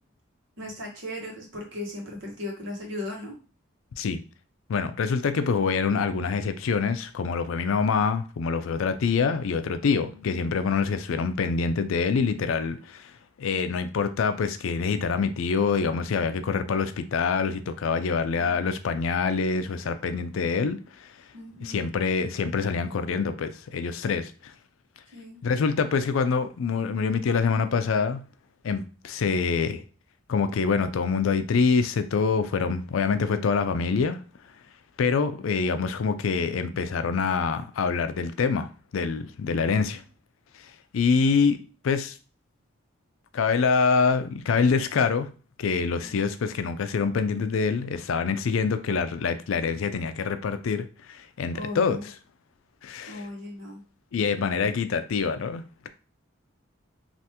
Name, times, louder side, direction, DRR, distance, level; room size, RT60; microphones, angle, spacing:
voice 1, 0.6-3.3 10.0-10.2 21.3-21.9 25.1-25.4 46.0-46.2 51.5-52.1 53.1-53.8, left 1 dB, 65° right, 1.0 m, -38 dB
voice 2, 4.7-13.1 13.4-21.1 21.6-24.5 25.4-28.2 28.6-29.8 30.3-34.2 35.0-40.0 40.5-41.6 41.8-42.2 43.3-45.3 45.6-52.1 52.8-53.3 54.1-55.9, left 5 dB, 80° left, 0.4 m, -25 dB
3.4 x 2.5 x 2.8 m
head